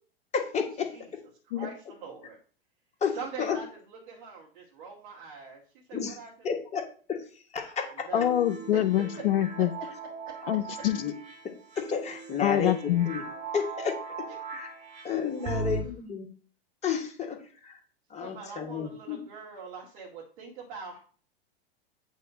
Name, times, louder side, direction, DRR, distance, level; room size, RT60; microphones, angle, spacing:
voice 1, 0.3-0.9 3.0-3.6 5.9-6.2 6.4-7.2 7.5-8.1 10.9-11.1 11.8-13.2 13.5-14.0 14.5-14.7 15.0-16.3 16.8-17.4 17.6-17.7 18.1-19.2, left 6 dB, 20° left, 3 dB, 1.6 m, -31 dB
voice 2, 1.5-2.4 3.1-5.6 5.9-6.5 7.8-8.4 8.7-8.8 14.3-14.4 15.4-15.7 18.2-21.0, right 5 dB, 55° right, -4 dB, 2.1 m, -43 dB
voice 3, 8.1-9.7 10.5-11.0 12.4-13.1 15.9-16.0, left 12 dB, 65° left, 9 dB, 0.5 m, -25 dB
sound 1, 8.1-15.8, right 3 dB, 35° right, 1.6 m, -39 dB
8.4 x 3.5 x 6.3 m, 0.43 s
figure-of-eight pair, 100°, 31 cm